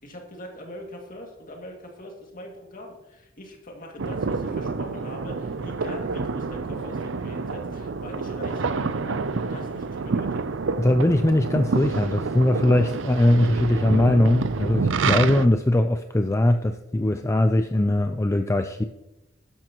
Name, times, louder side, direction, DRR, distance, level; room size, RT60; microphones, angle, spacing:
voice 1, 0.0-10.5, left 1 dB, 45° left, 1 dB, 2.4 m, -42 dB
sound 1, 4.0-15.5, right 4 dB, 70° right, 0.5 m, -28 dB
voice 2, 10.8-18.8, left 1 dB, 15° left, 7 dB, 0.4 m, -21 dB
12.5 x 11.0 x 3.0 m, 0.98 s
head